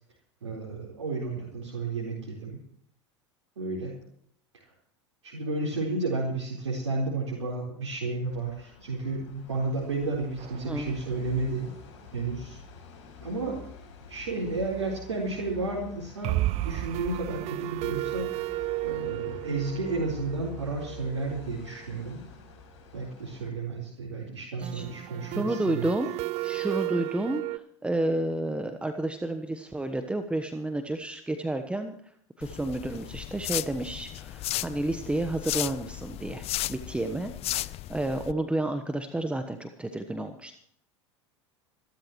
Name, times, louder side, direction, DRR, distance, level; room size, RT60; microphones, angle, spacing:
voice 1, 0.4-2.6 3.6-4.0 4.5-4.7 5.2-11.7 12.1-12.6 13.2-13.6 14.1-18.5 18.8-22.2 22.9-25.9, right 3 dB, 80° right, -4 dB, 4.2 m, -32 dB
sound 1, 8.2-23.5, left 7 dB, 75° left, 6.9 m, -48 dB
sound 2, 10.4-11.6 11.9-12.0 12.3-12.4 16.2-21.9 24.6-27.6, right 17 dB, 45° right, 0.5 m, -34 dB
voice 2, 25.3-26.1 26.4-32.0 32.4-40.6, right 1 dB, 5° right, 7 dB, 1.1 m, -31 dB
sound 3, 32.4-38.3, left 15 dB, 40° left, 0.6 m, -35 dB
26.5 x 13.0 x 3.1 m, 0.70 s
hypercardioid pair, 85°, 15 cm